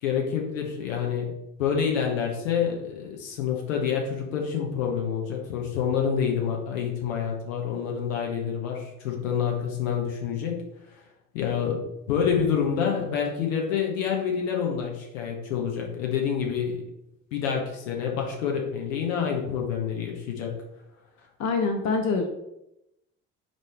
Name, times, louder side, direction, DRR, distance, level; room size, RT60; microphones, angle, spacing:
voice 1, 0.0-10.6 11.3-16.8 17.3-20.6, left 7 dB, 70° left, 1 dB, 1.4 m, -27 dB
voice 2, 21.4-22.3, left 4 dB, 40° left, 4 dB, 0.9 m, -25 dB
9.5 x 3.4 x 3.5 m, 0.86 s
figure-of-eight pair, 50°, 41 cm